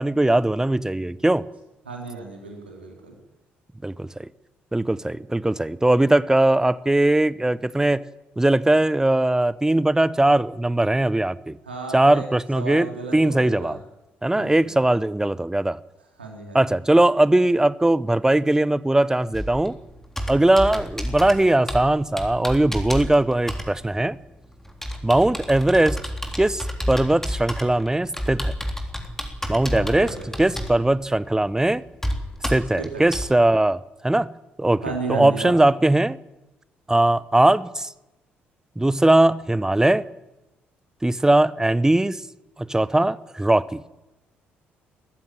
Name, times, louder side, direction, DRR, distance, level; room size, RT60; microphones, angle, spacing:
voice 1, 0.0-1.5 3.8-4.3 4.7-8.0 8.4-11.6 11.9-12.9 13.1-13.8 14.2-15.8 16.5-19.7 20.3-24.2 25.0-26.0 26.4-28.5 29.5-31.8 32.5-34.3 34.6-34.8 35.1-36.2 36.9-37.9 38.8-40.1 41.0-42.2 42.6-43.8, right 1 dB, 10° right, 0.9 m, -20 dB
voice 2, 1.9-3.2 11.7-12.3 12.6-13.8 14.3-15.0 16.2-16.8 29.7-30.3 32.8-33.0 34.8-35.6, right 4 dB, 85° right, 3.5 m, -34 dB
Computer keyboard, 19.3-33.3, equal, 5° left, 3.5 m, -31 dB
20.5 x 15.0 x 9.1 m
figure-of-eight pair, 45°, 6 cm